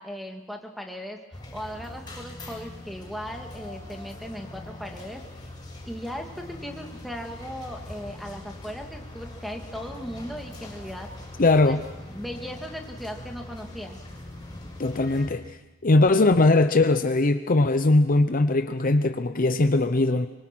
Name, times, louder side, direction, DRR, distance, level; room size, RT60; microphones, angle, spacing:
voice 1, 0.0-5.2 5.8-11.1 11.6-11.8 12.1-14.0, equal, ahead, 2 dB, 2.2 m, -37 dB
sound 1, 1.3-15.3, left 1 dB, 20° left, 7.1 m, -42 dB
voice 2, 11.4-11.8 14.8-15.4 15.8-20.3, left 2 dB, 40° left, 9 dB, 0.7 m, -20 dB
25.0 x 23.5 x 6.2 m, 1.0 s
head